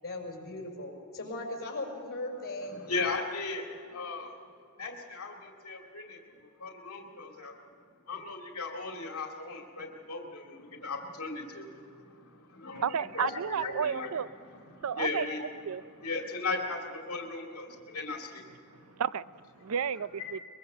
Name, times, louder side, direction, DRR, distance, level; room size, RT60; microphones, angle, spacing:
voice 1, 0.0-2.7, left 2 dB, 45° left, 5.8 m, -38 dB
voice 2, 2.7-4.4 4.8-7.6 8.1-12.9 13.1-14.1 14.7-15.5 16.0-18.4 18.8-18.9 20.3-20.4, left 3 dB, 75° left, 2.3 m, -37 dB
voice 3, 12.8-14.3 14.8-15.8 18.9-19.2 19.6-20.4, right 7 dB, 70° right, 0.5 m, -32 dB
23.0 x 22.0 x 6.8 m
head